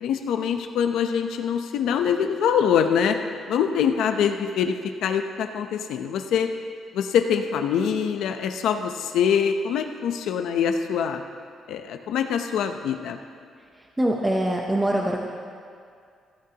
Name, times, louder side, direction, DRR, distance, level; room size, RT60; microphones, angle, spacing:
voice 1, 0.0-3.2 3.5-6.5 6.9-11.2 11.7-13.2, left 7 dB, 75° left, 6 dB, 0.6 m, -24 dB
voice 2, 14.0-15.3, right 1 dB, 10° right, 0 dB, 0.7 m, -23 dB
16.0 x 14.0 x 2.9 m, 2.2 s
cardioid pair, 175°, 0 cm